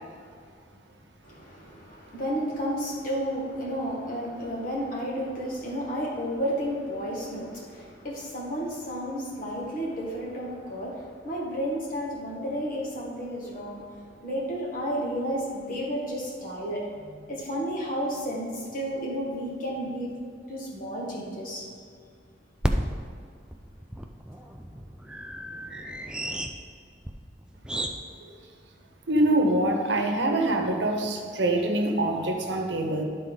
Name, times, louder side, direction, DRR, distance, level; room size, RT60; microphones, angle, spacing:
voice 1, 1.2-20.1 20.5-21.7, equal, 50° left, -4 dB, 1.8 m, -32 dB
sound 1, 18.2-18.3 18.9-19.0 19.3-19.4 22.6-28.0, right 1 dB, 5° right, 0.4 m, -33 dB
voice 2, 29.1-33.0, right 1 dB, 75° right, 3 dB, 0.9 m, -24 dB
11.0 x 4.2 x 4.0 m, 2.2 s
head